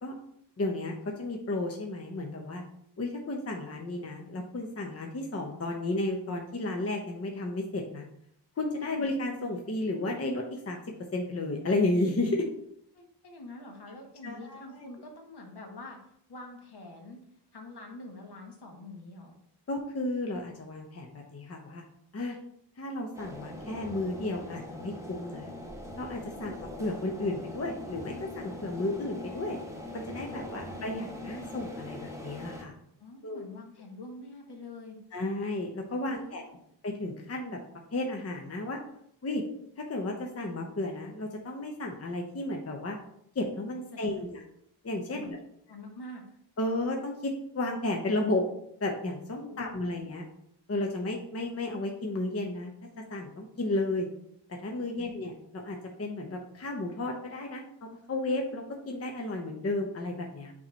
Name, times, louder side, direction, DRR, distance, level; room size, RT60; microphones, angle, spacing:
voice 1, 0.6-2.6 3.0-8.0 8.6-10.8 11.1-12.5 14.2-14.8 19.7-21.8 22.1-22.4 22.8-25.5 26.0-29.6 29.9-32.7 33.2-33.5 35.1-36.4 36.8-37.6 37.9-38.8 39.2-39.4 39.8-43.0 43.3-44.4 44.8-45.4 46.6-48.5 48.8-50.2 50.7-52.7 53.1-54.1 54.5-60.5, left 2 dB, 35° left, 2 dB, 0.7 m, -33 dB
voice 2, 8.8-9.1 12.9-16.0 16.3-17.2 17.5-19.4 30.3-30.8 33.0-35.0 36.1-36.7 43.9-44.3 45.1-45.3 45.7-46.3 49.5-49.7 55.0-55.3, left 2 dB, 65° left, 2 dB, 1.3 m, -46 dB
sound 1, 23.1-32.6, left 1 dB, 5° right, 0.8 m, -42 dB
8.5 x 2.9 x 4.3 m, 0.72 s
wide cardioid pair, 145°, 43 cm